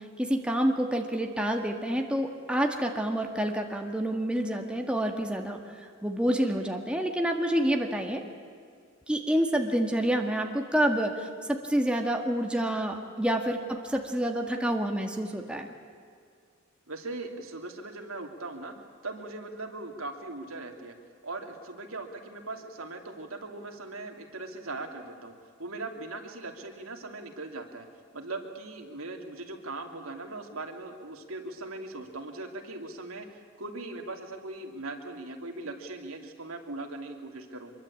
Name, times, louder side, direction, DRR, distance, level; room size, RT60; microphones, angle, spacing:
voice 1, 0.2-5.6 6.0-8.2 9.1-15.7, right 1 dB, 5° right, 2 dB, 1.8 m, -28 dB
voice 2, 16.9-18.7 19.0-21.0 21.2-25.3 25.6-27.9 28.1-33.3 33.6-37.7, right 2 dB, 80° right, 4 dB, 2.8 m, -39 dB
24.5 x 23.0 x 8.6 m, 2.2 s
head